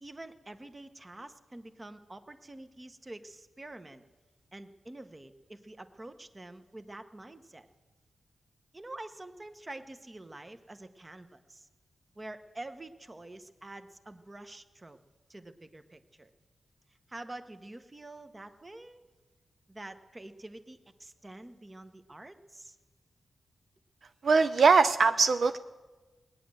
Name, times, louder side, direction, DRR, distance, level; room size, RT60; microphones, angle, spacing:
voice 1, 0.0-4.0 4.5-7.7 8.7-11.7 12.2-15.0 15.3-16.3 17.1-19.0 19.7-22.8, right 2 dB, 25° right, 10 dB, 0.9 m, -47 dB
voice 2, 24.2-25.6, right 4 dB, 65° right, 10 dB, 0.4 m, -22 dB
19.0 x 9.5 x 7.6 m, 1.3 s
wide cardioid pair, 95°, 0 cm